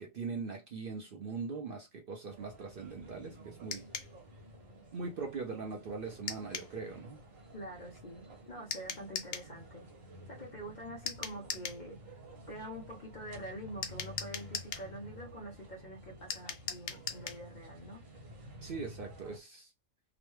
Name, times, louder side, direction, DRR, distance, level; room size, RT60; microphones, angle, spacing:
voice 1, 0.0-3.8 4.9-7.2 18.6-19.7, right 4 dB, 55° right, 0.7 m, -41 dB
sound 1, 2.3-19.4, equal, 75° right, 1.5 m, -52 dB
sound 2, 3.7-4.1 6.3-6.7 8.7-9.5 11.1-11.8 13.8-14.9 16.3-17.4, left 7 dB, 80° left, 1.0 m, -39 dB
voice 2, 7.5-9.8 10.3-12.0 12.5-18.0, right 1 dB, 45° left, 0.7 m, -46 dB
2.9 x 2.1 x 3.1 m
omnidirectional pair, 1.4 m